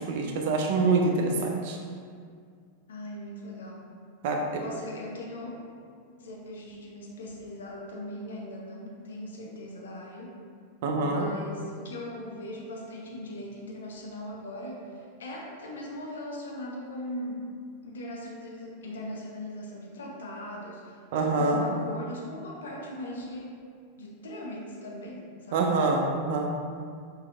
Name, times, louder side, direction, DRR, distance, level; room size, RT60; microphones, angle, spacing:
voice 1, 0.0-1.8 4.2-4.6 10.8-11.3 21.1-21.6 25.5-26.5, right 3 dB, 50° right, 2 dB, 0.5 m, -25 dB
voice 2, 2.9-3.9 4.6-5.7 6.2-10.4 11.0-17.5 17.8-21.0 21.4-23.6 24.0-25.7, left 1 dB, 65° left, -2 dB, 0.7 m, -39 dB
5.8 x 2.8 x 2.4 m, 2.1 s
figure-of-eight pair, 90°, 0 cm